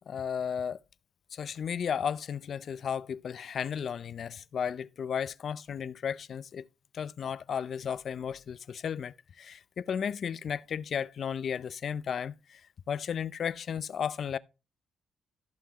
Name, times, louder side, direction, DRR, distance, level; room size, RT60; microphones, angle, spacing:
voice 1, 0.1-0.8 1.3-6.7 6.9-12.6 12.9-14.4, left 7 dB, 55° left, 0.5 m, -34 dB
14.5 x 5.8 x 3.0 m
cardioid pair, 90°, 0 cm